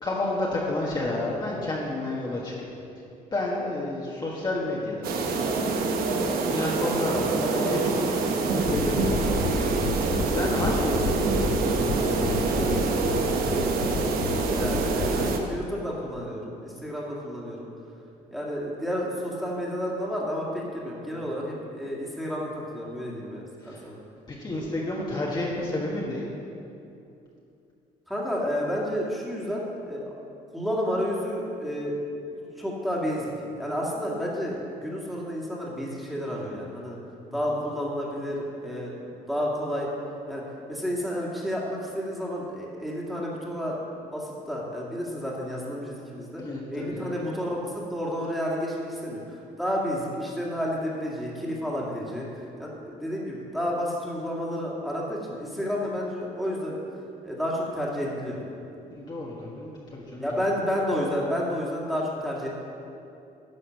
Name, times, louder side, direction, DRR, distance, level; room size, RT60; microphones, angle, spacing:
voice 1, 0.0-2.5 3.3-9.5 10.3-12.8 23.6-23.8 24.3-26.2 37.5-37.6 46.4-47.1 59.0-60.4, left 2 dB, 30° left, -5 dB, 1.6 m, -31 dB
sound 1, 5.0-15.4, right 4 dB, 75° right, 1.1 m, -26 dB
sound 2, 8.6-15.3, left 3 dB, 60° left, 1.5 m, -30 dB
voice 2, 13.2-13.9 14.4-17.7 18.3-24.0 28.1-30.1 30.5-33.3 33.5-37.0 37.3-38.9 39.3-39.9 40.3-40.4 40.7-46.4 46.7-56.8 57.2-58.4 60.2-62.5, equal, ahead, -5 dB, 2.2 m, -31 dB
11.0 x 6.5 x 6.5 m, 2.7 s
cardioid pair, 115°, 15 cm